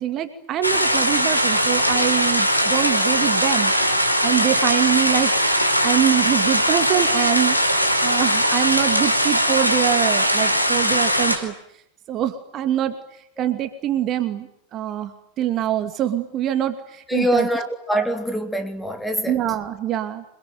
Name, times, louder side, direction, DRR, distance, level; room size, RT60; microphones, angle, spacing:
voice 1, 0.0-3.7 4.2-11.5 12.1-13.0 13.4-17.7 19.2-20.2, right 11 dB, 35° right, 2.4 m, -24 dB
sound 1, 0.6-11.4, equal, 90° left, 4.7 m, -20 dB
voice 2, 17.1-19.4, equal, 5° left, 3.5 m, -24 dB
28.0 x 22.0 x 9.2 m
figure-of-eight pair, 90°, 0 cm